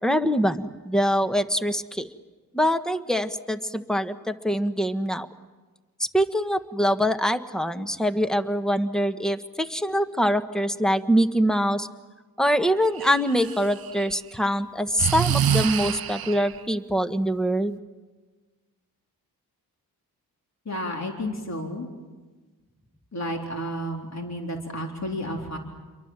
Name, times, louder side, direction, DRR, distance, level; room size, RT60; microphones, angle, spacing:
voice 1, 0.0-2.1 2.5-5.3 6.0-11.9 12.4-17.8, equal, ahead, 9 dB, 1.5 m, -24 dB
Breathing, 13.0-14.1 15.0-16.6, right 9 dB, 65° right, 0.7 m, -26 dB
voice 2, 20.7-21.9 23.1-25.6, equal, 40° left, 1 dB, 4.0 m, -31 dB
30.0 x 23.0 x 7.6 m, 1.3 s
cardioid pair, 55°, 40 cm